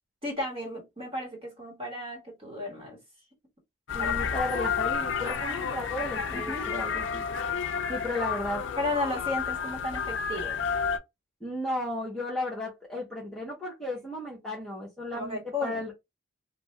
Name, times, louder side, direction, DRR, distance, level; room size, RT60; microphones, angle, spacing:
voice 1, 0.2-3.0 4.0-4.3 5.2-5.6 6.3-6.7 8.8-10.6 15.1-15.8, left 2 dB, 25° right, 1.4 m, -34 dB
sound 1, 3.9-11.0, left 6 dB, 60° left, 0.5 m, -31 dB
voice 2, 3.9-7.2 7.9-8.6 11.4-15.9, left 1 dB, 5° left, 1.0 m, -34 dB
2.7 x 2.5 x 3.2 m
head